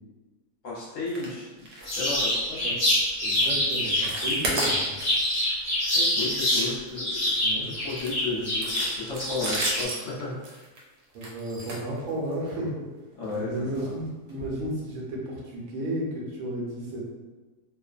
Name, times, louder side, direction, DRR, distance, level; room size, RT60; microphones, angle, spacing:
voice 1, 0.6-1.7 1.9-2.6 5.9-7.3 7.6-10.6 13.1-13.9, left 3 dB, 60° left, -6 dB, 0.9 m, -34 dB
sound 1, 1.1-1.3 1.6-1.9 2.2-2.4 2.8-3.0 3.4-3.6 3.9-5.3 5.6-5.8 6.2-7.3 7.9-12.5 13.2-13.4 13.7-13.8 14.3-14.4, right 1 dB, 85° right, 1.2 m, -34 dB
sound 2, 1.9-6.7 7.0-9.8, left 1 dB, 45° left, 1.2 m, -26 dB
voice 2, 3.2-4.9 7.4-7.7 11.1-12.9 13.3-17.1, right 1 dB, 70° right, -4 dB, 1.1 m, -33 dB
3.0 x 2.0 x 2.4 m, 1.3 s
omnidirectional pair, 1.7 m